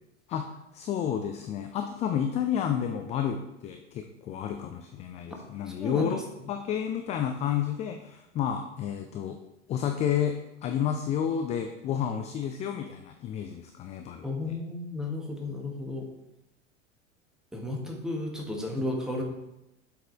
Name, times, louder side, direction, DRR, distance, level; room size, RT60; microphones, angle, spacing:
voice 1, 0.7-6.2 6.5-9.4 9.7-10.4 10.6-14.6, left 9 dB, 20° left, 6 dB, 0.3 m, -30 dB
voice 2, 5.8-6.2 14.2-16.1 17.5-19.2, left 2 dB, ahead, 0 dB, 1.5 m, -33 dB
7.4 x 5.3 x 4.5 m, 0.91 s
figure-of-eight pair, 85°, 37 cm